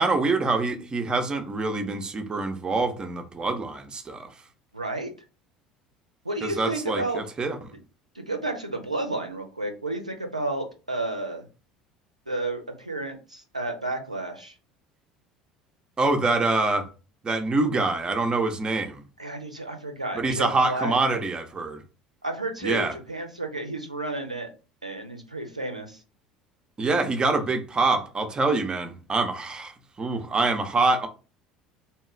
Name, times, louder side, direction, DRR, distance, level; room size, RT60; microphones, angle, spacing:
voice 1, 0.0-4.3 6.4-7.6 16.0-16.9 17.2-19.0 20.2-21.8 22.6-22.9 26.8-29.7 30.0-31.1, right 3 dB, 25° right, 0.6 m, -25 dB
voice 2, 4.7-5.1 6.2-7.2 8.1-11.5 12.3-14.5 19.2-20.9 22.2-24.5 24.8-26.0, right 2 dB, 90° right, 0.4 m, -31 dB
2.8 x 2.3 x 3.2 m
figure-of-eight pair, 65°, 4 cm